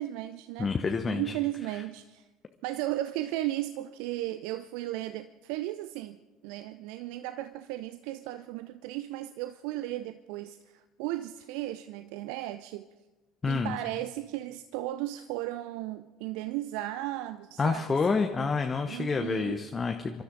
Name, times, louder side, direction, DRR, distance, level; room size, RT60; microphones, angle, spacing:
voice 1, 0.0-0.8 1.1-2.2 2.6-6.2 6.4-12.9 13.5-18.2 18.9-19.6, right 15 dB, 60° right, 0.4 m, -35 dB
voice 2, 0.6-1.3 1.7-1.8 13.4-13.8 17.6-20.2, left 4 dB, 25° left, 1.0 m, -28 dB
26.5 x 13.0 x 4.0 m
figure-of-eight pair, 60°, 0 cm